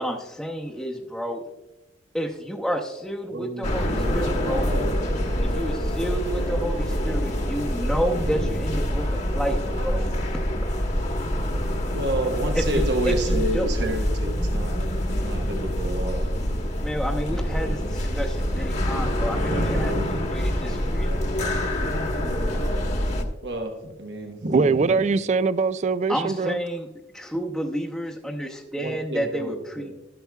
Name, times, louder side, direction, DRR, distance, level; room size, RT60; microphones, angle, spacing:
voice 1, 0.0-1.4 2.1-4.7 5.4-10.0 12.5-13.7 16.8-21.1 21.4-21.6 26.1-26.9 27.1-30.1, equal, ahead, 0.8 m, -30 dB
voice 2, 3.3-4.2 4.4-4.9 5.2-5.8 11.9-14.8 15.2-16.4 19.5-20.2 23.4-25.0 28.8-29.9, right 1 dB, 70° right, 1.1 m, -30 dB
sound 1, 3.6-23.2, equal, 40° left, 1.3 m, -25 dB
voice 3, 24.5-26.6, right 4 dB, 40° right, 0.3 m, -22 dB
12.0 x 11.5 x 2.3 m
head